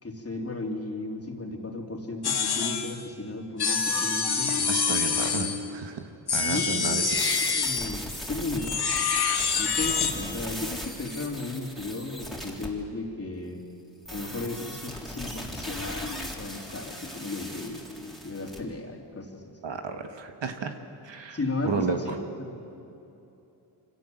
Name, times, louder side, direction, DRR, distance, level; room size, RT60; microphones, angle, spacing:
voice 1, 0.0-4.7 6.4-7.1 7.5-9.0 9.6-13.6 14.1-19.6 21.3-22.6, left 2 dB, 30° left, 1 dB, 3.4 m, -35 dB
sound 1, 2.2-3.0 3.6-5.7 6.3-8.0 8.6-10.2, left 5 dB, 55° left, 2.0 m, -26 dB
voice 2, 4.7-7.3 19.6-20.8 21.0-21.4 21.6-22.2, right 5 dB, 65° right, 6 dB, 1.7 m, -32 dB
sound 2, 7.2-12.7 14.0-18.6, equal, ahead, 3.8 m, -39 dB
24.5 x 17.0 x 7.9 m, 2.9 s
cardioid pair, 65°, 47 cm